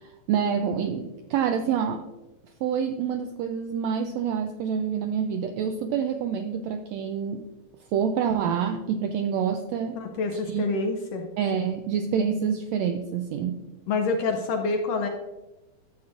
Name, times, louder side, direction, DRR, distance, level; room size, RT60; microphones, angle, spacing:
voice 1, 0.3-2.1 2.6-7.5 7.9-10.0 10.5-10.6 11.4-13.6, right 7 dB, 80° right, 6 dB, 1.6 m, -27 dB
voice 2, 9.9-11.3 13.9-15.1, left 3 dB, 75° left, 4 dB, 1.6 m, -27 dB
11.5 x 7.4 x 2.5 m, 1.0 s
omnidirectional pair, 3.5 m